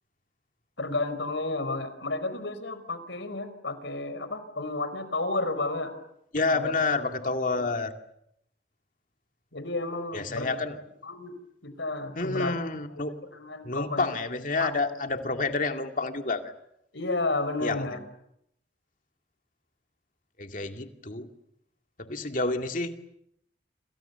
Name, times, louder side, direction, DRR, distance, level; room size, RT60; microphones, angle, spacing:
voice 1, 0.8-5.9 6.5-6.7 7.5-7.7 9.5-10.7 11.0-11.4 11.6-12.5 12.9-14.1 14.6-14.7 16.9-18.0, left 2 dB, 85° left, 11 dB, 4.7 m, -32 dB
voice 2, 6.3-7.9 10.1-10.8 12.2-13.2 13.6-16.5 17.6-18.0 20.4-21.3 22.0-22.9, left 3 dB, 45° left, 6 dB, 2.3 m, -29 dB
30.0 x 27.5 x 6.9 m, 0.77 s
head